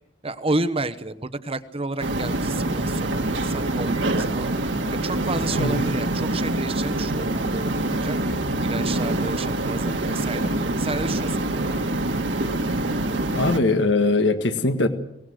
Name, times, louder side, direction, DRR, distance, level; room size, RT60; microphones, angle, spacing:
voice 1, 0.2-4.5 4.9-8.2 8.6-10.5 10.8-11.7, right 2 dB, 30° right, 12 dB, 1.1 m, -31 dB
sound 1, 2.0-13.6, right 1 dB, 70° right, 2.0 m, -25 dB
voice 2, 5.6-5.9 13.3-14.9, left 2 dB, 70° left, 8 dB, 1.7 m, -21 dB
23.5 x 18.5 x 6.5 m, 0.80 s
head